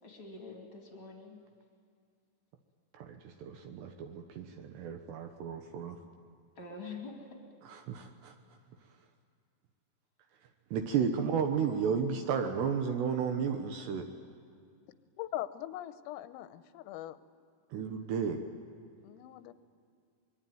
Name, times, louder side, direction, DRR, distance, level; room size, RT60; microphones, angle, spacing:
voice 1, 0.0-1.4 6.6-7.4 11.0-11.3, left 3 dB, 35° left, 1 dB, 2.0 m, -46 dB
voice 2, 2.9-6.0 7.7-8.3 10.7-14.1 17.7-18.4, right 6 dB, 75° right, 6 dB, 2.7 m, -33 dB
voice 3, 15.2-17.2 19.0-19.5, left 14 dB, 90° left, 12 dB, 3.5 m, -41 dB
24.0 x 22.5 x 9.1 m, 2.3 s
omnidirectional pair, 5.9 m